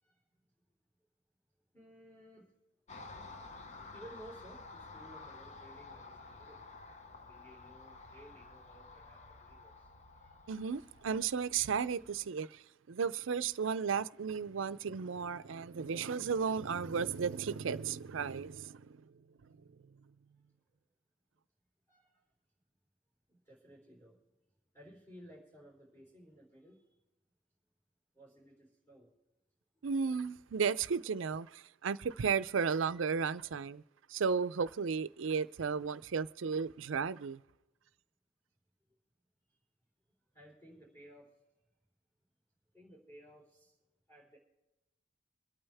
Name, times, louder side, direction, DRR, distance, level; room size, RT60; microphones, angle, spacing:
voice 1, 1.7-2.5 3.9-6.7 7.2-9.9 10.1-10.5 21.9-22.2 23.3-24.2 24.7-26.8 28.1-29.1 40.3-41.3 42.7-43.7 44.1-44.4, right 1 dB, 15° left, 3.9 m, -57 dB
Car passing by, 2.9-12.3, left 3 dB, 35° left, 0.7 m, -52 dB
voice 2, 10.5-19.0 29.8-33.8 34.1-37.4, right 6 dB, 80° right, 0.5 m, -34 dB
26.5 x 8.9 x 3.4 m
head